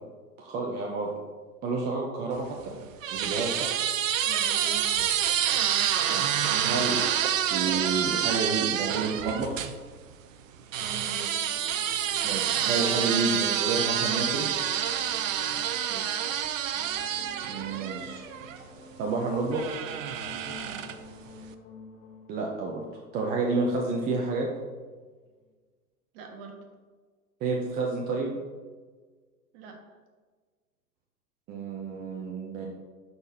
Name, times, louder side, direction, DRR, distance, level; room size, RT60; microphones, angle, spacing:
voice 1, 0.4-1.1 1.6-2.7 3.1-3.7 6.1-7.1 7.5-9.6 12.2-14.5 17.5-18.2 19.0-19.8 22.3-22.8 23.1-24.5 27.4-28.4 31.5-32.7, right 3 dB, 20° right, 0 dB, 0.6 m, -30 dB
sound 1, 2.4-9.7 10.7-18.6 19.5-21.1, right 10 dB, 60° right, 0.6 m, -28 dB
voice 2, 4.2-5.1 10.7-11.4 15.9-16.2 20.6-20.9 26.1-26.6 29.5-29.8, right 4 dB, 40° right, 3 dB, 1.3 m, -43 dB
sound 2, 10.9-25.5, left 3 dB, 55° left, 1.2 m, -49 dB
11.0 x 4.2 x 2.8 m, 1.4 s
figure-of-eight pair, 110°, 46 cm